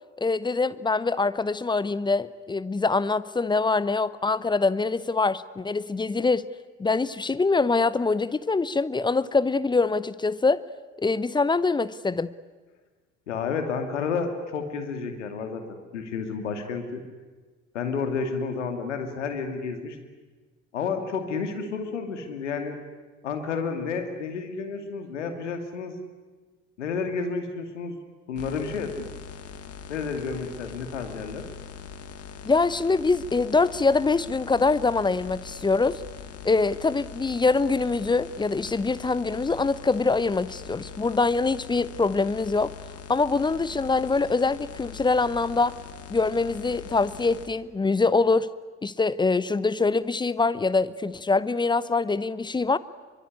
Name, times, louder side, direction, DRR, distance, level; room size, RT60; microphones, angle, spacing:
voice 1, 0.2-6.5 6.8-10.6 11.0-12.3 32.4-36.0 36.4-42.7 43.1-45.8 46.1-48.5 48.8-52.8, left 3 dB, 10° left, 0.8 m, -24 dB
voice 2, 13.3-15.6 15.9-17.0 17.7-20.0 20.7-22.8 23.2-25.9 26.8-28.0 28.3-29.1 29.9-31.4, left 5 dB, 75° left, 2.6 m, -30 dB
sound 1, 28.4-47.5, left 7 dB, 40° left, 2.2 m, -42 dB
24.0 x 23.5 x 9.8 m
figure-of-eight pair, 60°, 36 cm